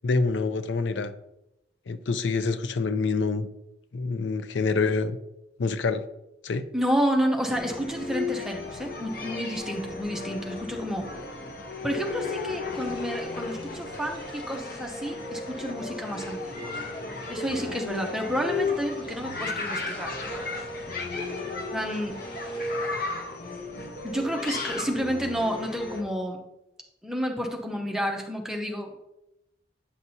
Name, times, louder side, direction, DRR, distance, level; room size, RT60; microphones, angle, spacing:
voice 1, 0.0-1.1 1.9-3.5 3.9-5.2 5.6-6.0 6.4-6.7, left 4 dB, 80° left, 11 dB, 0.5 m, -26 dB
voice 2, 6.7-11.1 11.8-16.7 17.3-20.5 21.7-22.2 24.0-26.4 27.0-29.0, equal, 5° right, 2 dB, 0.7 m, -30 dB
sound 1, 7.5-26.0, left 3 dB, 50° left, 0.9 m, -34 dB
sound 2, 12.7-23.0, left 1 dB, 25° left, 1.0 m, -47 dB
8.5 x 6.0 x 2.7 m, 0.88 s
head